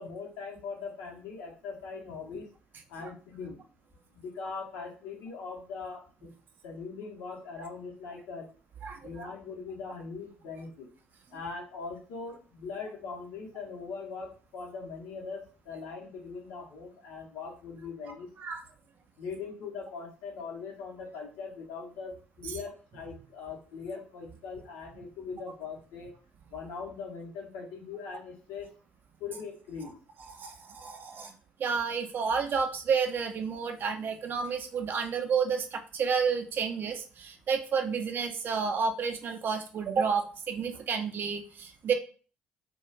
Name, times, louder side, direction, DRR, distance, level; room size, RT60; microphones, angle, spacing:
voice 1, 0.0-2.5 2.9-3.6 4.1-6.3 6.6-8.5 9.0-10.9 11.3-18.3 19.2-26.1 26.5-28.7 29.2-30.0, left 5 dB, 65° left, 0 dB, 0.7 m, -41 dB
voice 2, 8.8-9.3 18.4-18.6 22.4-22.6 30.3-31.3 31.6-41.9, right 6 dB, 45° right, 5 dB, 0.4 m, -30 dB
2.2 x 2.1 x 3.2 m, 0.39 s
figure-of-eight pair, 50°, 5 cm